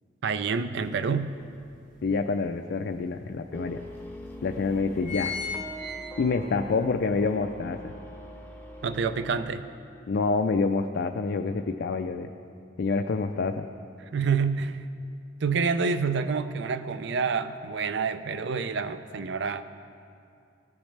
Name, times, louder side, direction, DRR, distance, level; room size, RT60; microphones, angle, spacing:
voice 1, 0.2-1.3 8.8-9.7 14.1-14.8 15.4-19.6, right 5 dB, 60° right, 11 dB, 0.5 m, -27 dB
sound 1, 0.8-0.9 1.4-2.5 3.2-3.3 3.5-3.6 4.3-4.5 4.8-6.6 7.0-7.1, left 5 dB, 45° right, 1.9 m, -35 dB
voice 2, 2.0-3.8 4.4-5.4 6.2-7.9 10.1-12.3 12.8-13.7, left 4 dB, 60° left, 5 dB, 0.4 m, -27 dB
sound 2, 3.5-9.4, equal, 10° left, 0.7 m, -42 dB
17.5 x 7.2 x 3.3 m, 2.4 s
head